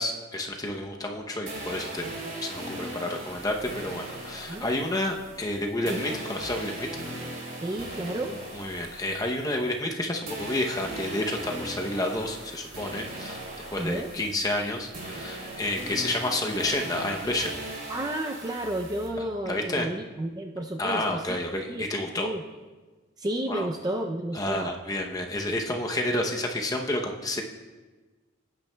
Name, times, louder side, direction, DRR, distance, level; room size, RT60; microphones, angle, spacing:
voice 1, 0.0-2.1 2.4-6.9 8.5-13.4 13.7-17.5 19.5-19.9 20.8-22.3 23.5-23.7 24.3-27.4, left 1 dB, 15° left, 2 dB, 0.7 m, -30 dB
sound 1, 1.5-10.0 10.3-19.1, right 1 dB, 40° right, 2.8 m, -39 dB
voice 2, 7.6-8.4 13.8-14.1 17.9-21.2 21.7-21.8 22.2-22.4 23.2-24.7, right 1 dB, 20° right, 3 dB, 0.4 m, -31 dB
16.5 x 8.9 x 2.2 m, 1.3 s
head